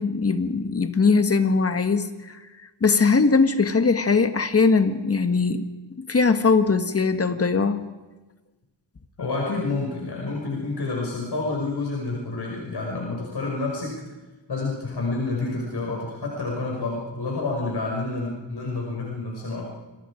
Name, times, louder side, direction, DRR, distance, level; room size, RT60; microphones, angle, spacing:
voice 1, 0.0-2.4 2.8-5.7 6.0-7.9, left 4 dB, 30° left, 9 dB, 1.5 m, -20 dB
voice 2, 9.2-14.0 14.5-19.7, left 3 dB, 55° left, -3 dB, 5.9 m, -29 dB
29.5 x 24.0 x 5.0 m, 1.2 s
wide cardioid pair, 155°, 48 cm